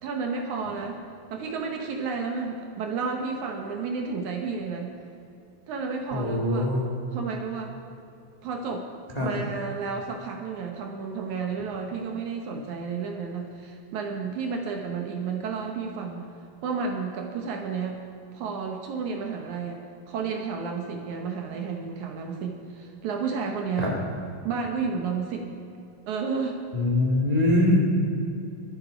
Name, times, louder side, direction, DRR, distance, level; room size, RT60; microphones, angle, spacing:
voice 1, 0.0-1.0 1.3-4.9 5.7-6.7 7.1-7.7 8.4-8.9 9.2-16.3 16.6-18.0 18.3-24.0 24.4-25.5 26.1-26.6, right 5 dB, 70° right, 3 dB, 2.0 m, -31 dB
voice 2, 6.1-6.8 9.2-9.3 23.8-23.9 26.7-27.8, left 1 dB, 55° left, -2 dB, 0.4 m, -22 dB
22.5 x 8.0 x 5.0 m, 2.7 s
omnidirectional pair, 4.4 m